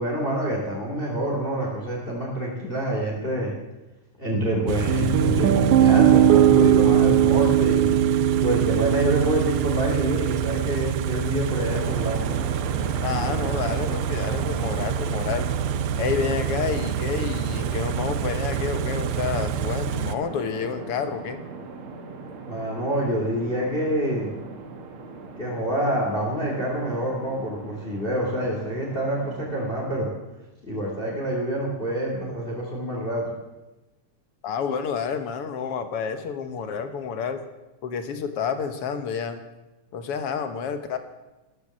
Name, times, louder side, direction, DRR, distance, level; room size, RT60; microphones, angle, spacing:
voice 1, 0.0-3.5 4.2-7.9 8.3-12.2 22.4-24.4 25.4-30.1 30.6-33.3, right 1 dB, 20° left, -2 dB, 3.0 m, -27 dB
Car / Idling, 4.7-20.2, right 9 dB, 75° right, 1.8 m, -27 dB
Piano, 4.9-13.0, right 10 dB, 90° right, 2.4 m, -21 dB
sound 1, 11.7-29.7, right 3 dB, 50° right, 2.4 m, -37 dB
voice 2, 13.0-15.5 16.0-21.4 34.4-37.4 37.8-39.4 39.9-41.0, left 6 dB, 60° left, 9 dB, 1.9 m, -29 dB
14.5 x 13.0 x 7.4 m, 1.1 s
omnidirectional pair, 3.4 m